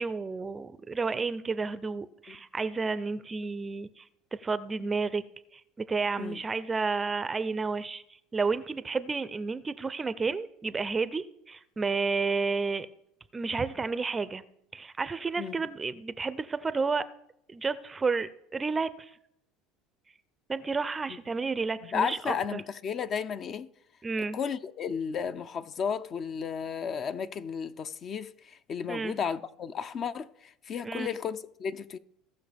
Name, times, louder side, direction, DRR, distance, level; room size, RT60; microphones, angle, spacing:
voice 1, 0.0-4.0 4.4-5.2 5.5-8.0 8.3-12.9 13.3-14.4 14.7-17.1 17.5-19.1 20.5-22.6 24.0-24.4 28.9-29.2 30.8-31.1, right 4 dB, 20° right, 0.5 m, -31 dB
voice 2, 21.8-23.7 24.3-32.0, left 7 dB, 40° left, 0.5 m, -33 dB
17.0 x 6.0 x 3.5 m
supercardioid pair, 115°, 0 cm